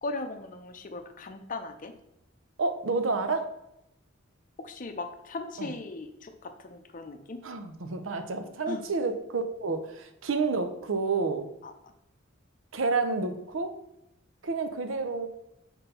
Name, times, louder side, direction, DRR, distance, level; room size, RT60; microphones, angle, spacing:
voice 1, 0.0-1.9 4.6-7.4 8.7-8.8 11.6-11.9, left 3 dB, 40° left, 7 dB, 0.6 m, -38 dB
voice 2, 2.6-3.5 5.6-5.7 7.4-11.5 12.7-13.7 14.4-15.3, right 4 dB, 70° right, 8 dB, 0.7 m, -29 dB
4.4 x 3.9 x 5.4 m, 0.84 s
head